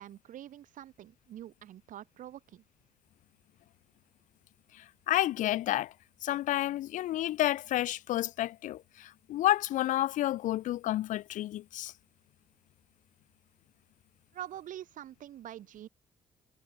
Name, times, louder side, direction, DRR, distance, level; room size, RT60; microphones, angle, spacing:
voice 1, 0.0-2.6 14.3-15.9, right 12 dB, 60° right, 1.9 m, -45 dB
voice 2, 4.8-5.9 6.2-11.9, left 14 dB, 55° left, 0.5 m, -30 dB
figure-of-eight pair, 45°, 15 cm